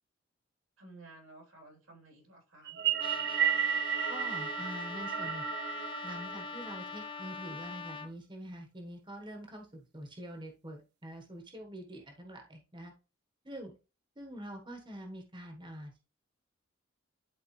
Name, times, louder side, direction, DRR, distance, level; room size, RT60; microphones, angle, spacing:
voice 1, 0.8-2.8, right 2 dB, 90° right, 3.6 m, -54 dB
sound 1, 2.7-7.2, right 9 dB, 55° right, 0.6 m, -33 dB
Trumpet, 3.0-8.1, left 6 dB, 25° left, 0.7 m, -43 dB
voice 2, 4.1-5.5 6.0-12.9 13.4-13.7 14.2-16.0, equal, 25° right, 1.3 m, -45 dB
11.0 x 4.5 x 3.2 m
head